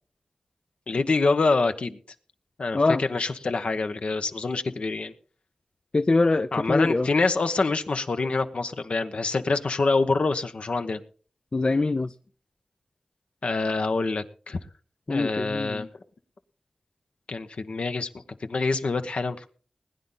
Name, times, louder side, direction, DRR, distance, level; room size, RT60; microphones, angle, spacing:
voice 1, 0.9-2.0 2.6-5.1 6.5-11.0 13.4-14.6 15.1-15.9 17.3-18.1 18.4-19.4, left 3 dB, 75° left, 8 dB, 1.1 m, -26 dB
voice 2, 5.9-7.1 11.5-12.1 15.1-15.9, left 3 dB, 45° left, 11 dB, 0.5 m, -23 dB
20.5 x 9.8 x 3.9 m, 0.40 s
cardioid pair, 50°, 2 cm